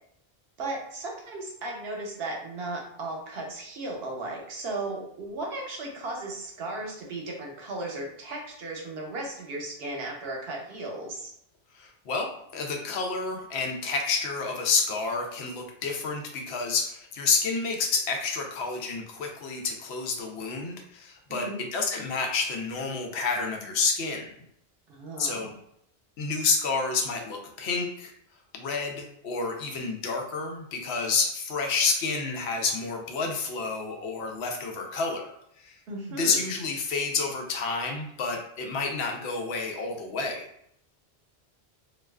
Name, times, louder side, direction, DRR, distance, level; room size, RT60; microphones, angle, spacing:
voice 1, 0.6-11.3 21.3-21.6 24.9-25.5 35.9-36.5, right 2 dB, 75° right, 0 dB, 0.9 m, -36 dB
voice 2, 11.8-24.2 25.2-25.5 26.2-28.1 28.5-35.3 35.6-35.8 36.2-40.4, left 4 dB, 90° left, 2 dB, 0.8 m, -29 dB
2.4 x 2.3 x 2.2 m, 0.73 s
omnidirectional pair, 1.1 m